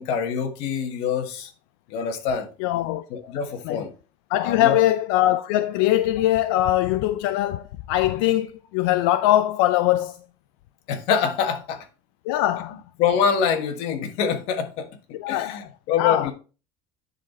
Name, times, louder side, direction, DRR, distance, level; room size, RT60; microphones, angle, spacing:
voice 1, 0.0-1.5 1.9-2.5 3.1-3.9 4.4-4.8 10.9-11.8 13.0-16.3, left 7 dB, 60° left, 1.4 m, -25 dB
voice 2, 2.6-3.3 3.6-3.8 4.3-10.2 12.2-12.8 15.1-15.7 15.9-16.3, left 14 dB, 85° left, 0.5 m, -22 dB
9.9 x 4.2 x 4.3 m
cardioid pair, 170°, 12 cm